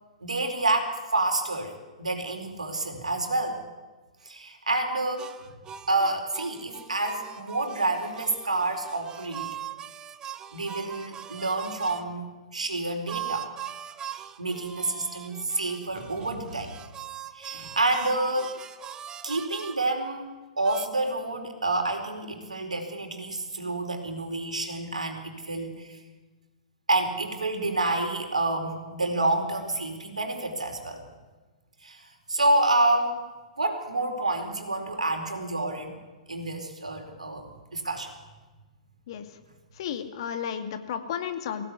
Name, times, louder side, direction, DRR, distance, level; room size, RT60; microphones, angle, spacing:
voice 1, 0.2-1.7 2.0-3.6 4.2-5.3 5.9-9.5 10.5-13.5 14.4-16.8 17.3-18.5 19.2-20.3 20.6-26.0 26.9-31.1 31.8-33.2 33.6-35.9 36.3-38.1, right 2 dB, 75° right, 5 dB, 4.5 m, -28 dB
sound 1, 5.2-12.1 13.1-19.8 20.6-20.9, right 10 dB, 20° right, 1.1 m, -41 dB
voice 2, 39.8-41.6, left 8 dB, 50° left, 7 dB, 2.4 m, -33 dB
23.0 x 17.5 x 9.7 m, 1.3 s
figure-of-eight pair, 110°, 4 cm